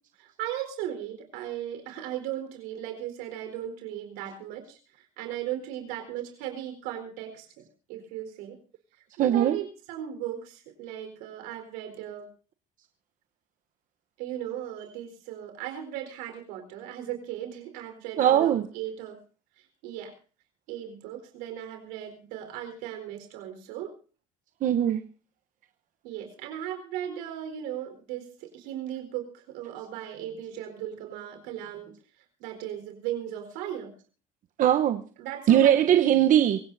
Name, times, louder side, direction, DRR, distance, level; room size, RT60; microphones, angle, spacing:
voice 1, 0.2-4.8 5.2-7.5 7.9-8.6 9.2-12.3 14.2-19.2 19.8-20.1 20.7-23.9 26.0-31.9 32.4-33.9 35.2-36.2, right 11 dB, 85° right, 5 dB, 4.3 m, -37 dB
voice 2, 9.2-9.6 18.2-18.7 24.6-25.0 34.6-35.0 35.5-36.6, right 10 dB, 55° right, 8 dB, 1.0 m, -20 dB
24.0 x 16.5 x 2.7 m, 0.39 s
supercardioid pair, 95°, 16 cm